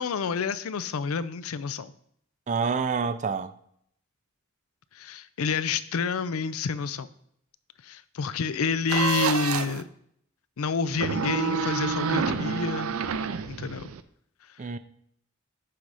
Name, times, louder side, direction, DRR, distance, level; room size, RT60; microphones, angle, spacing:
voice 1, 0.0-1.9 4.9-7.1 7.8-9.9 10.6-12.9 13.5-13.9, left 5 dB, 90° left, 0.5 m, -29 dB
voice 2, 2.5-3.5 14.6-14.8, right 5 dB, 35° right, 0.4 m, -27 dB
sound 1, 8.9-9.8 10.9-14.0, right 5 dB, 85° right, 0.5 m, -28 dB
11.5 x 3.9 x 4.9 m
head